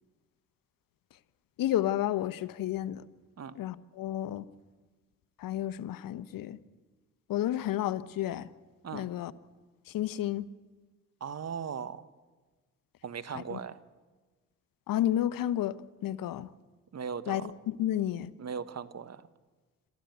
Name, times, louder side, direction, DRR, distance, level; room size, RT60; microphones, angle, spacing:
voice 1, 1.6-3.0 3.6-4.4 5.4-6.6 7.3-8.5 8.9-9.3 9.9-10.4 13.3-13.6 14.9-15.8 16.0-16.5 17.3-18.3, left 12 dB, 70° left, 16 dB, 1.0 m, -31 dB
voice 2, 11.2-12.1 13.0-13.8 16.9-17.5 18.4-19.3, right 7 dB, 45° right, 13 dB, 1.5 m, -38 dB
27.0 x 14.5 x 8.1 m, 1.3 s
supercardioid pair, 60°, 35 cm